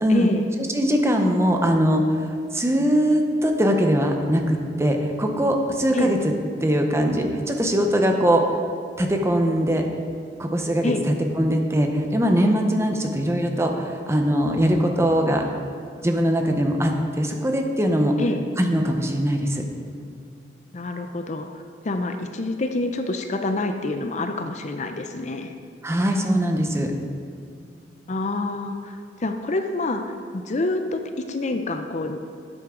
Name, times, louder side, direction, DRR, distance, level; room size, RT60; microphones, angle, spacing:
voice 1, 0.1-0.5 5.9-6.1 10.8-11.1 18.2-18.4 20.7-25.5 28.1-32.2, left 2 dB, 40° left, 6 dB, 0.5 m, -27 dB
voice 2, 0.7-6.2 6.6-8.6 9.0-9.8 10.4-10.9 11.4-15.4 16.0-18.1 18.6-19.6 25.8-26.9, equal, 15° right, 3 dB, 0.8 m, -21 dB
12.5 x 8.9 x 3.8 m, 2.3 s
head